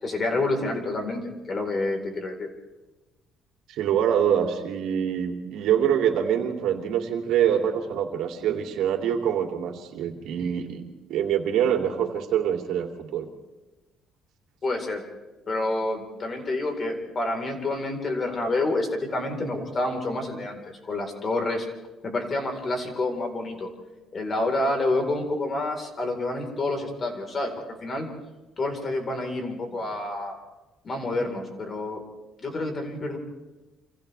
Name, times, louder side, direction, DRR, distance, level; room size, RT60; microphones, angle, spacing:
voice 1, 0.0-1.2 1.5-2.5 14.6-15.0 15.5-21.7 22.0-23.7 24.1-27.5 27.8-28.1 28.6-30.4 30.8-32.0 32.4-33.2, left 2 dB, 35° left, 3 dB, 4.3 m, -28 dB
voice 2, 3.7-13.3 29.7-29.8, right 9 dB, 75° right, 3 dB, 2.9 m, -25 dB
29.5 x 26.5 x 3.5 m, 1.1 s
cardioid pair, 125°, 0 cm